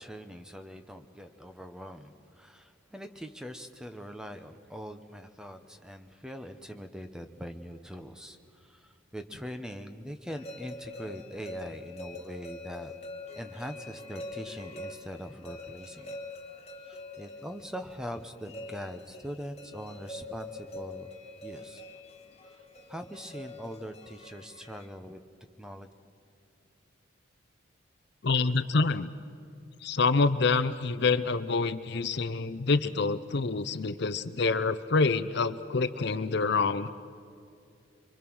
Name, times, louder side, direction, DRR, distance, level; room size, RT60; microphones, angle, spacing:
voice 1, 0.0-12.9 13.4-16.2 16.8-21.1 21.4-21.8 22.4-22.6 22.9-25.2 25.6-25.9, equal, 5° right, 7 dB, 0.9 m, -42 dB
sound 1, 10.3-24.9, left 2 dB, 30° left, 1.6 m, -44 dB
voice 2, 28.2-29.1 29.8-36.9, left 4 dB, 55° left, 12 dB, 0.7 m, -27 dB
24.5 x 24.5 x 6.2 m, 2.5 s
head